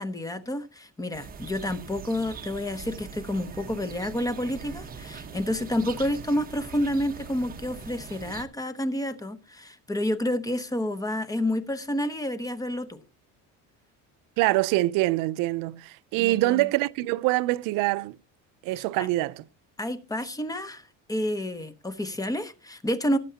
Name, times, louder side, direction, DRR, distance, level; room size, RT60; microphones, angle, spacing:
voice 1, 0.0-13.0 16.2-16.7 19.0-19.1 19.8-20.8 21.1-23.2, left 1 dB, 10° left, 0.9 m, -29 dB
sound 1, 1.1-8.4, right 6 dB, 25° right, 1.2 m, -42 dB
voice 2, 14.4-18.2 18.6-19.4, right 18 dB, 80° right, 0.6 m, -25 dB
18.0 x 8.0 x 2.8 m
cardioid pair, 150°, 33 cm